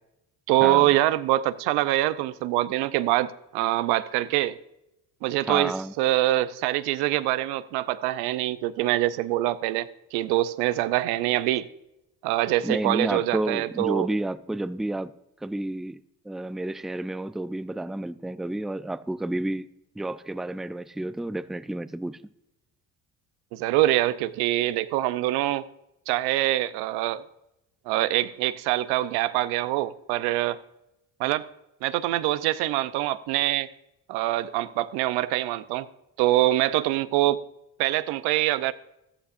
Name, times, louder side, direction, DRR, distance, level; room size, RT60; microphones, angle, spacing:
voice 1, 0.5-4.6 5.2-11.7 12.2-14.1 23.5-25.6 26.1-27.2 27.9-30.6 31.2-31.4 31.8-33.7 34.1-35.9 36.2-37.4 37.8-38.7, right 15 dB, 85° right, 0.7 m, -24 dB
voice 2, 5.5-5.9 12.6-15.1 15.4-16.0 16.3-19.7 20.0-22.2, right 1 dB, ahead, 0.4 m, -30 dB
14.5 x 13.0 x 2.5 m
supercardioid pair, 65°, 38 cm